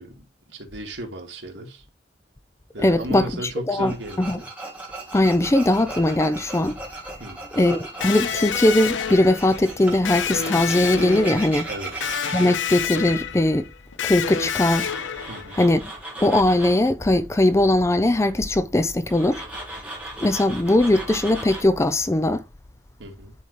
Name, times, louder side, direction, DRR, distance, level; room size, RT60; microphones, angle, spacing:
voice 1, 0.0-1.8 2.7-4.5 7.2-7.4 11.7-11.9 15.3-15.6 23.0-23.3, right 1 dB, 80° right, 2.2 m, -35 dB
voice 2, 2.8-3.3 3.7-3.9 4.2-4.4 5.1-6.8 7.5-11.7 12.3-13.7 14.0-14.9 15.6-15.8 16.2-19.4 20.2-22.4, left 1 dB, 15° left, 0.4 m, -20 dB
Tools, 3.9-12.5 14.6-16.9 19.1-21.6, right 2 dB, 10° right, 1.8 m, -37 dB
Electric guitar, 8.0-15.7, left 7 dB, 85° left, 0.6 m, -29 dB
11.0 x 4.0 x 3.1 m
head